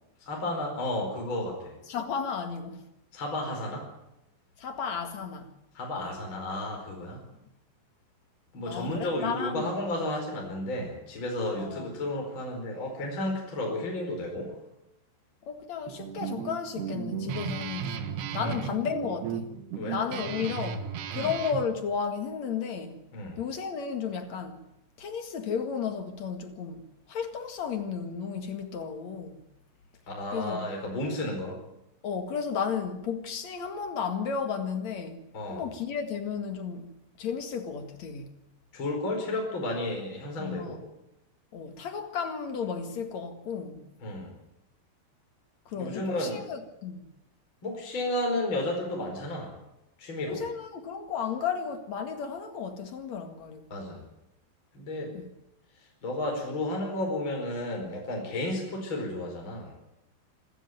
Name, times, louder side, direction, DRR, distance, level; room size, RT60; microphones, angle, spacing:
voice 1, 0.2-1.8 3.1-3.9 5.8-7.2 8.5-14.5 18.4-18.6 19.8-20.0 21.1-21.3 23.1-23.4 30.1-31.6 35.3-35.7 38.7-40.8 44.0-44.3 45.8-46.4 47.6-49.5 50.0-50.5 53.7-54.0 54.7-55.1 55.8-59.7, left 1 dB, 25° left, 5.2 m, -32 dB
voice 2, 1.9-2.9 4.6-5.5 7.3-7.4 8.6-9.6 11.6-11.9 15.4-18.0 18.3-19.5 19.9-23.0 23.4-24.6 25.0-26.8 27.1-29.4 30.3-30.7 32.0-35.2 35.5-38.3 40.4-40.8 41.5-43.8 45.7-47.0 50.2-53.7 55.1-55.3, left 6 dB, 50° left, 2.4 m, -33 dB
Guitar, 15.9-21.6, right 7 dB, 70° right, 3.5 m, -35 dB
26.5 x 14.0 x 9.2 m
omnidirectional pair, 5.3 m